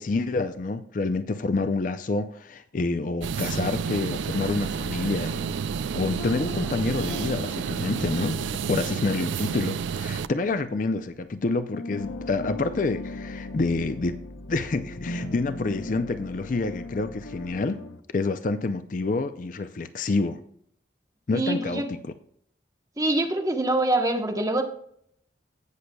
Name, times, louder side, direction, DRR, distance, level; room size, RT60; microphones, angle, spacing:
voice 1, 0.0-5.5 5.9-14.2 14.5-17.8 18.1-20.4 21.3-22.0, left 3 dB, 45° left, 10 dB, 0.4 m, -28 dB
sound 1, 3.2-10.3, right 6 dB, 75° right, 0.4 m, -30 dB
sound 2, 6.2-11.4 11.7-18.0, left 2 dB, 90° left, 0.8 m, -39 dB
voice 2, 21.3-21.9 23.0-24.6, right 2 dB, 20° right, 3 dB, 1.0 m, -25 dB
16.5 x 6.5 x 2.3 m, 0.66 s
head